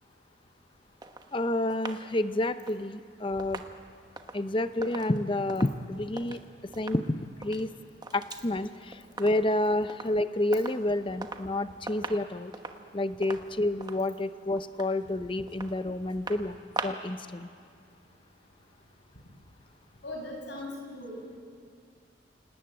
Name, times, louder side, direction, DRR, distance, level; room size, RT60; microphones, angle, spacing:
sound 1, 1.0-6.4 6.7-7.1 7.3-8.5 8.7-9.6 9.9-10.2 10.5-11.5 11.8-17.2 17.5-17.6, right 3 dB, 20° right, 1.2 m, -42 dB
voice 1, 1.3-3.6 4.3-6.4 6.8-7.7 8.1-12.5 12.9-17.5, left 1 dB, 25° left, 11 dB, 0.7 m, -29 dB
voice 2, 20.0-21.4, left 1 dB, 65° left, 0 dB, 6.5 m, -39 dB
29.0 x 19.0 x 9.0 m, 2.2 s
head